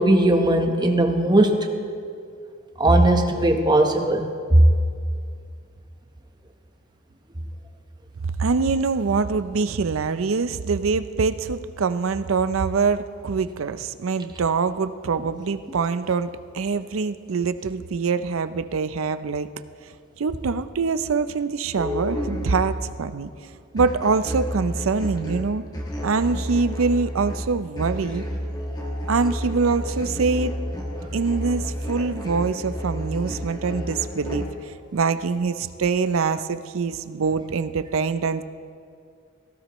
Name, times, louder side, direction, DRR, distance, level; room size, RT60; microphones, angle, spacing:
voice 1, 0.0-1.6 2.8-4.6, right 1 dB, 20° right, 4 dB, 1.0 m, -18 dB
voice 2, 8.2-19.5 19.8-23.3 23.7-25.6 26.0-28.2 29.1-30.5 31.1-38.4, right 4 dB, 80° right, 12 dB, 0.5 m, -24 dB
sound 1, 21.8-23.0 23.8-34.5, equal, 20° left, 1.5 m, -30 dB
18.0 x 15.5 x 3.1 m, 2.3 s
head